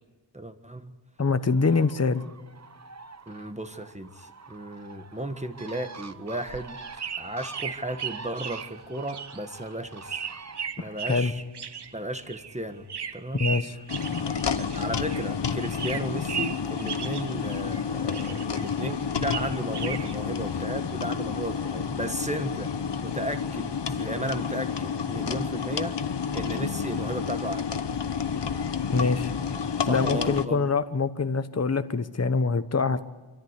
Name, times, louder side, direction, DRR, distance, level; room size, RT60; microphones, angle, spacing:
voice 1, 0.3-0.9 3.3-10.3 10.8-11.4 11.9-12.9 13.1-13.5 14.6-22.7 23.0-26.0 26.3-27.7 29.8-30.7, right 1 dB, 15° right, 7 dB, 1.4 m, -35 dB
voice 2, 1.2-2.2 10.8-11.3 13.3-13.8 28.9-29.3 29.9-33.0, left 4 dB, 35° left, 11 dB, 1.0 m, -25 dB
Bird, 1.5-10.7, right 4 dB, 35° right, 1.0 m, -46 dB
sound 1, 6.3-15.3 15.6-17.8 18.1-20.2, right 7 dB, 60° right, 1.1 m, -37 dB
sound 2, 13.9-30.5, left 6 dB, 65° left, 1.1 m, -30 dB
25.5 x 14.0 x 8.2 m, 1.3 s
wide cardioid pair, 70°, 45 cm